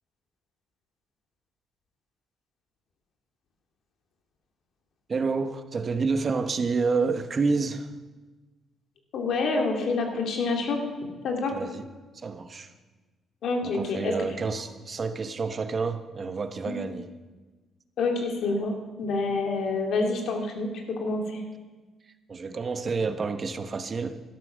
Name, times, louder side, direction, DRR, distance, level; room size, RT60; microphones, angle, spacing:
voice 1, 5.1-7.9 11.5-11.8 12.2-12.7 13.6-17.1 22.3-24.2, right 4 dB, 40° right, 9 dB, 1.0 m, -29 dB
voice 2, 9.1-10.8 11.2-11.5 13.4-14.1 16.7-16.8 18.0-21.4, left 3 dB, 70° left, 2 dB, 2.4 m, -27 dB
12.0 x 12.0 x 6.4 m, 1.3 s
cardioid pair, 90°, 0 cm